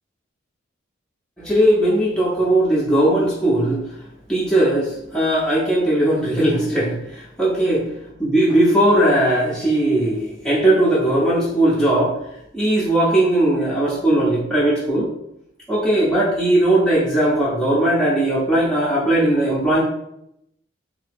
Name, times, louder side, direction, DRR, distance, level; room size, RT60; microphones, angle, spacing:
voice 1, 1.4-3.8 4.3-7.9 8.2-12.2 12.5-15.1 15.7-19.8, right 1 dB, 5° left, -7 dB, 0.5 m, -18 dB
2.8 x 2.7 x 3.4 m, 0.78 s
head